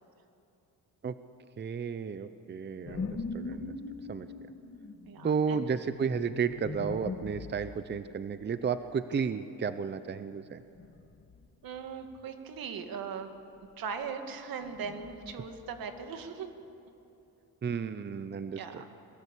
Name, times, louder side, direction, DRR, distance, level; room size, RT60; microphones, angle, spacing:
voice 1, 1.6-3.7 4.1-4.3 5.2-10.6 17.6-18.8, right 6 dB, 30° right, 12 dB, 0.7 m, -33 dB
sound 1, 2.9-8.0 10.7-11.5 11.7-12.2 14.6-16.1, left 3 dB, 40° left, 2.0 m, -41 dB
voice 2, 5.1-5.7 11.6-13.3 13.8-16.5 18.5-18.8, right 6 dB, 70° right, 6 dB, 2.3 m, -39 dB
23.0 x 21.0 x 8.4 m, 2.8 s
cardioid pair, 110°, 36 cm